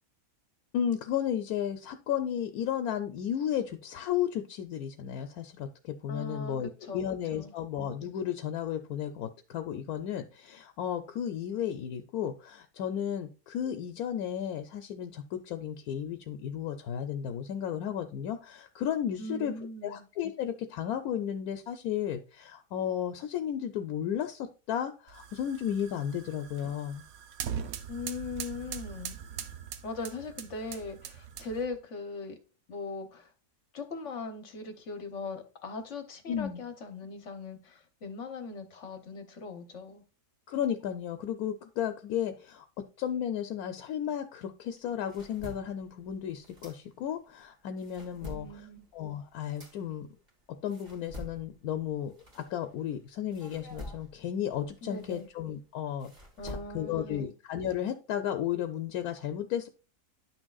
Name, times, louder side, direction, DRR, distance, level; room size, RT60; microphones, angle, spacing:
voice 1, 0.7-19.5 19.8-27.0 36.3-36.6 40.5-42.6 43.0-48.7 48.9-50.1 50.6-56.1 56.4-59.7, left 9 dB, 80° left, 1.1 m, -34 dB
voice 2, 6.1-7.0 7.3-7.5 19.2-20.0 27.9-29.1 29.8-32.4 32.7-33.3 33.7-40.0 48.2-48.8 54.8-55.3 56.4-57.3, left 3 dB, 55° left, 1.1 m, -40 dB
sound 1, 25.1-31.8, right 8 dB, 75° right, 1.1 m, -41 dB
sound 2, 44.7-47.3 47.6-52.9 53.3-57.0, left 1 dB, 30° right, 1.7 m, -48 dB
10.5 x 6.1 x 2.3 m
omnidirectional pair, 1.6 m